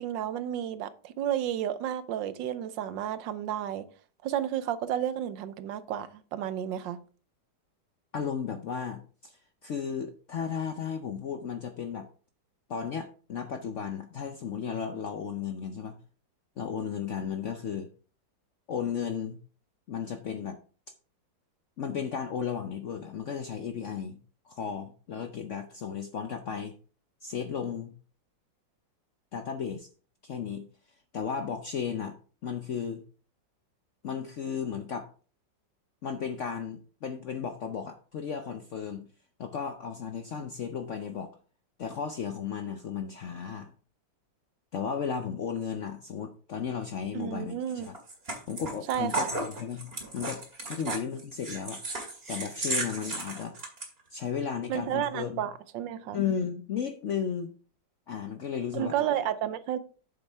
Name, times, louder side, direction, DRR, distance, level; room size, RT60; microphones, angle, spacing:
voice 1, 0.0-3.9 4.2-7.0 47.1-47.9 48.9-49.3 50.9-51.0 54.7-56.2 58.7-59.8, right 10 dB, 80° right, 1.4 m, -32 dB
voice 2, 8.1-12.1 12.7-16.0 16.6-17.9 18.7-19.4 19.9-20.6 21.8-24.2 24.4-26.8 27.2-27.9 29.3-29.9 30.2-30.7 31.1-33.0 34.0-35.1 36.0-39.1 39.4-41.4 41.8-43.7 44.7-48.0 48.5-49.9 50.1-52.0 52.3-53.5 54.1-55.5 56.1-57.5 58.1-58.9, left 7 dB, 65° left, 0.7 m, -34 dB
sound 1, 47.7-53.9, right 2 dB, 30° right, 2.3 m, -35 dB
8.1 x 7.1 x 3.4 m
omnidirectional pair, 2.0 m